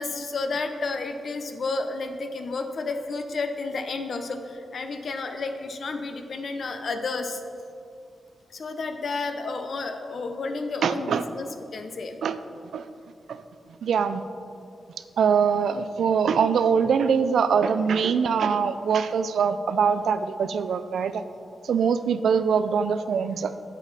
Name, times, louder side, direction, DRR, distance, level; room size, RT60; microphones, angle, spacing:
voice 1, 0.0-7.4 8.5-12.2, left 3 dB, 55° left, 7 dB, 0.7 m, -31 dB
voice 2, 10.8-11.2 12.2-12.4 12.7-12.9 13.3-13.4 13.8-14.2 15.2-21.2 21.6-23.5, right 6 dB, 80° right, 12 dB, 0.4 m, -23 dB
9.0 x 8.0 x 4.1 m, 2.5 s
wide cardioid pair, 115°, 0 cm